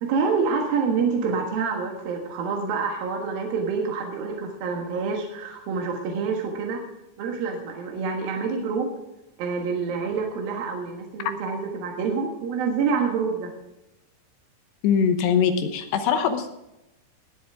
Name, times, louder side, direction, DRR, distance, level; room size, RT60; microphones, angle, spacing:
voice 1, 0.0-6.8 7.2-8.9 9.4-13.5, right 5 dB, 65° right, 1 dB, 3.0 m, -27 dB
voice 2, 14.8-16.5, left 7 dB, 75° left, 7 dB, 3.0 m, -22 dB
20.5 x 8.3 x 3.6 m, 0.91 s
omnidirectional pair, 5.2 m